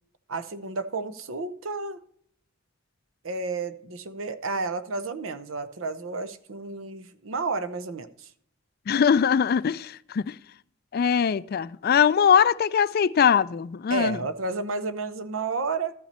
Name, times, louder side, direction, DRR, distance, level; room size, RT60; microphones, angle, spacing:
voice 1, 0.3-2.0 3.2-8.3 13.9-15.9, right 3 dB, 90° right, 0.8 m, -31 dB
voice 2, 8.9-10.3 10.9-14.2, left 7 dB, 50° left, 0.4 m, -21 dB
13.0 x 6.0 x 4.2 m
head